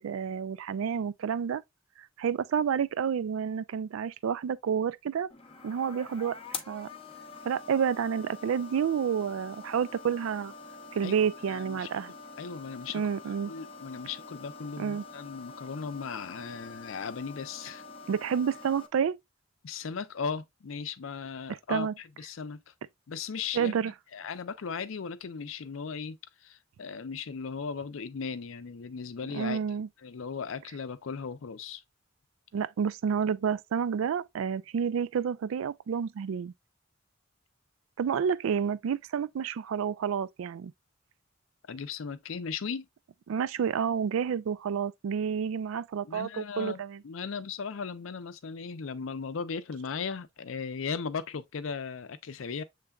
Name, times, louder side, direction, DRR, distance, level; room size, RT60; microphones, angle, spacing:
voice 1, 0.0-1.6 2.2-5.3 5.6-6.9 7.4-10.5 10.9-12.1 12.9-13.5 14.8-15.0 18.1-19.2 21.5-21.9 23.5-23.9 29.3-29.9 32.5-36.5 38.0-40.7 43.3-47.0, right 7 dB, 85° right, 0.3 m, -29 dB
sound 1, 5.3-18.9, left 4 dB, 30° left, 0.6 m, -46 dB
voice 2, 11.0-11.9 12.4-13.0 13.5-17.8 19.6-21.9 22.2-22.6 23.1-26.2 26.4-29.6 30.0-31.8 41.7-42.9 46.0-52.6, left 5 dB, 75° left, 0.5 m, -37 dB
6.9 x 3.2 x 2.3 m
head